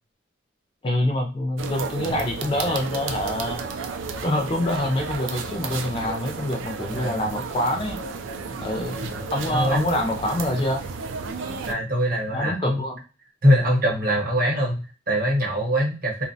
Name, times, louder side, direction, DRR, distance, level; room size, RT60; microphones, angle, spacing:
voice 1, 0.8-3.6 4.2-8.0 8.6-9.0 9.3-10.8 12.3-13.0, left 1 dB, 25° left, 3 dB, 0.3 m, -26 dB
sound 1, 1.6-11.7, right 4 dB, 75° right, 0.3 m, -33 dB
voice 2, 6.9-7.3 9.0-10.0 11.7-12.8 13.4-16.2, equal, 45° right, -1 dB, 0.8 m, -23 dB
2.6 x 2.0 x 2.7 m, 0.33 s
head